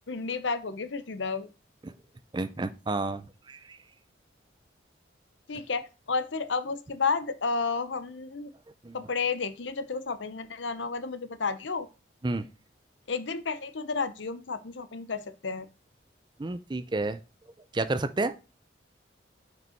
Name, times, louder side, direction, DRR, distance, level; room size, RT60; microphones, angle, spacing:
voice 1, 0.1-1.5 5.5-8.5 8.9-11.9 13.1-15.7, left 4 dB, 75° left, 0.8 m, -31 dB
voice 2, 2.3-3.8 8.8-9.0 12.2-12.5 16.4-17.2 17.7-18.4, right 2 dB, 25° right, 0.4 m, -31 dB
6.3 x 5.2 x 4.4 m
head